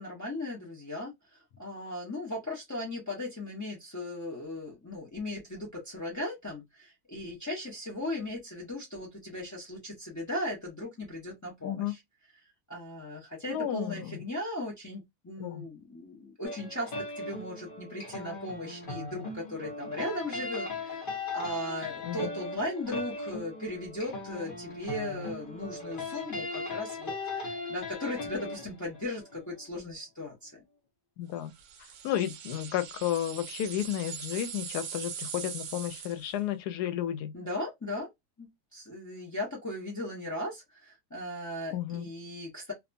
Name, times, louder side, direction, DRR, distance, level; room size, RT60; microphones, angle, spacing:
voice 1, 0.0-12.0 12.7-30.6 37.3-38.1 38.4-42.7, left 1 dB, 30° left, 0.3 m, -37 dB
voice 2, 13.5-14.2 15.4-15.6 22.0-22.3 31.2-31.5 32.0-37.3 41.7-42.0, left 11 dB, 85° left, 1.1 m, -32 dB
sound 1, 16.4-29.7, left 3 dB, 45° left, 0.8 m, -38 dB
sound 2, 31.6-36.4, right 7 dB, 65° right, 0.8 m, -41 dB
2.7 x 2.2 x 2.5 m
omnidirectional pair, 1.7 m